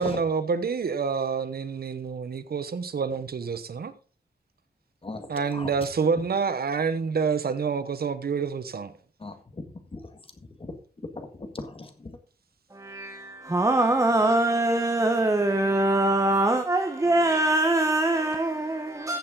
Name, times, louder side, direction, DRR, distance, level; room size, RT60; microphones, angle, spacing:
voice 1, 0.0-3.9 5.3-8.9, right 5 dB, 70° right, 1.0 m, -27 dB
voice 2, 5.0-5.9 9.2-9.7 9.9-10.7 11.1-12.2, left 2 dB, 35° left, 1.8 m, -39 dB
voice 3, 12.7-19.2, right 2 dB, 20° right, 1.0 m, -23 dB
14.5 x 6.9 x 3.9 m
wide cardioid pair, 120°, 17 cm